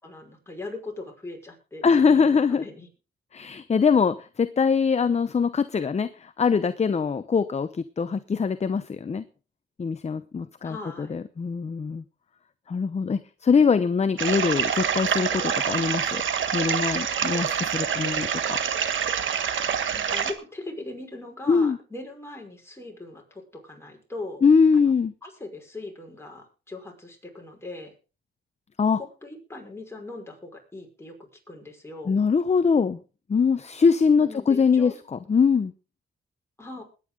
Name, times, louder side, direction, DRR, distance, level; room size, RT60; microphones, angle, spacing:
voice 1, 0.0-2.9 10.6-11.1 20.0-24.4 24.7-24.9 25.2-27.9 28.9-32.2 34.2-35.0 36.6-36.8, left 2 dB, 10° left, 1 dB, 5.3 m, -40 dB
voice 2, 1.8-2.6 3.3-9.2 9.8-12.0 12.7-16.2 16.5-18.6 21.5-21.8 24.4-25.1 28.8-29.0 32.1-33.0 33.3-35.7, left 5 dB, 30° left, 12 dB, 0.7 m, -22 dB
sound 1, 14.2-20.3, right 8 dB, 65° right, 1.5 m, -26 dB
21.0 x 9.2 x 3.8 m, 0.34 s
cardioid pair, 80°, 21 cm